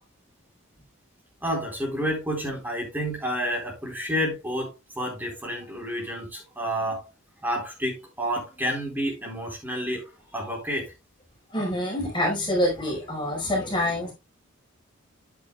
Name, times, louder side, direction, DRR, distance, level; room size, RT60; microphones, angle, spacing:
voice 1, 1.4-4.7 5.0-7.0 7.4-10.1 10.3-10.8, equal, 10° right, 4.1 m, -29 dB
voice 2, 11.5-14.1, left 1 dB, 25° left, 4.8 m, -26 dB
10.5 x 8.9 x 2.3 m
head